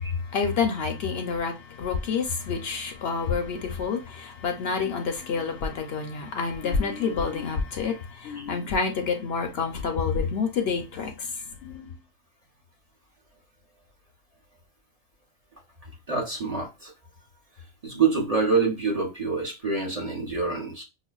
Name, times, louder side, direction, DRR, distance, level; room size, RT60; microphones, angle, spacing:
voice 1, 0.3-11.3 11.6-11.9, left 5 dB, 65° left, 0.8 m, -28 dB
voice 2, 16.1-16.9 17.8-20.8, right 4 dB, 35° right, 0.7 m, -26 dB
5.6 x 2.2 x 2.3 m
omnidirectional pair, 1.3 m